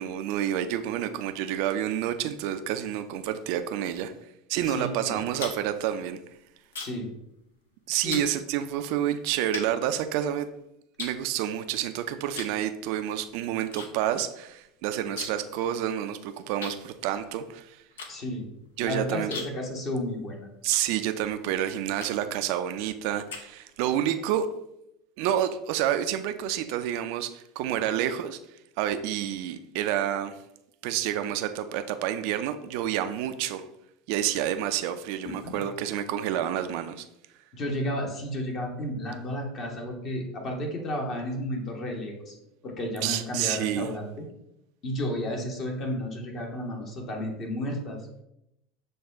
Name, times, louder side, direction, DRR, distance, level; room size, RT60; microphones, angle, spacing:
voice 1, 0.0-4.1 4.5-6.2 7.9-10.5 11.0-17.8 18.8-19.3 20.6-24.5 25.2-28.4 28.8-30.3 30.8-33.6 34.1-37.1 43.0-43.9, right 11 dB, 60° right, 9 dB, 0.3 m, -29 dB
voice 2, 4.6-5.2 6.8-7.1 7.9-8.3 18.1-18.5 18.8-20.5 35.2-35.6 37.5-42.3 42.6-44.3 44.8-48.0, left 1 dB, 40° left, 1 dB, 1.2 m, -32 dB
sound 1, 5.1-7.1 7.4-7.7 8.1-8.3 9.0-9.1 9.5-10.5 11.0-11.8 12.3-12.6 12.9-13.9 14.2-14.3 14.5-15.5 15.8-15.9 16.6-21.4 22.0-22.4 22.9-23.9, left 4 dB, 75° left, 0.6 m, -40 dB
6.5 x 2.3 x 3.5 m, 0.84 s
figure-of-eight pair, 75°, 0 cm